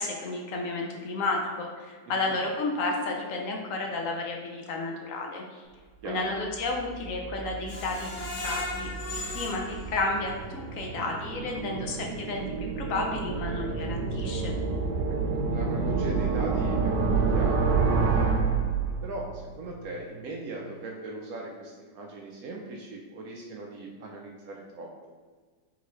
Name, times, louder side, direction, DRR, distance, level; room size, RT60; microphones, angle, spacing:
voice 1, 0.0-5.6 6.0-14.5, left 2 dB, 70° left, 1 dB, 0.8 m, -32 dB
voice 2, 2.0-2.4 6.0-6.4 15.1-17.6 17.9-18.3 19.0-25.1, right 2 dB, 70° right, 0 dB, 0.9 m, -39 dB
sound 1, 6.4-19.4, right 4 dB, 90° right, 1.2 m, -29 dB
Screech, 7.7-10.7 11.1-11.2 11.6-11.7, left 2 dB, 50° left, 1.2 m, -37 dB
sound 2, 13.2-21.0, right 1 dB, 50° right, 1.3 m, -45 dB
3.8 x 3.7 x 3.1 m, 1.5 s
omnidirectional pair, 1.8 m